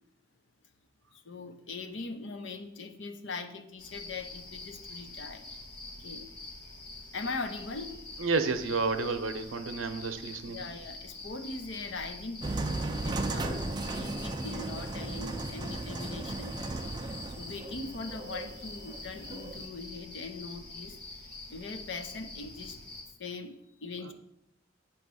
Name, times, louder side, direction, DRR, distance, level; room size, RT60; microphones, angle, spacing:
voice 1, 1.1-5.5 6.0-6.3 7.1-8.3 10.5-16.6 17.4-22.8 23.2-24.1, left 3 dB, 70° left, 7 dB, 0.7 m, -41 dB
sound 1, 3.8-23.0, left 2 dB, 25° left, 2.0 m, -45 dB
voice 2, 8.2-10.6, right 4 dB, 90° right, 9 dB, 0.7 m, -30 dB
sound 2, 12.4-19.7, right 2 dB, 20° right, 0.4 m, -36 dB
8.5 x 3.1 x 6.1 m, 0.81 s
head